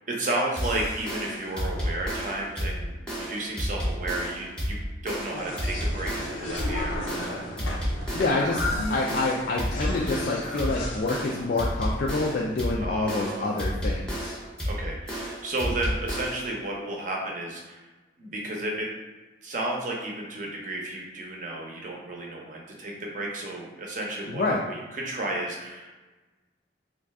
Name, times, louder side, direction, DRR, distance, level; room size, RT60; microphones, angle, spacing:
voice 1, 0.1-4.8 5.0-7.4 12.8-13.7 14.7-17.9 18.2-18.9 19.4-26.1, right 1 dB, 40° right, -1 dB, 0.6 m, -33 dB
sound 1, 0.6-16.5, equal, 5° left, 0.7 m, -31 dB
sound 2, 5.3-11.4, left 1 dB, 90° left, 0.7 m, -34 dB
voice 2, 8.1-8.6 8.9-14.4 24.3-24.6, left 3 dB, 50° left, -2 dB, 0.3 m, -27 dB
3.1 x 2.5 x 3.4 m, 1.2 s
head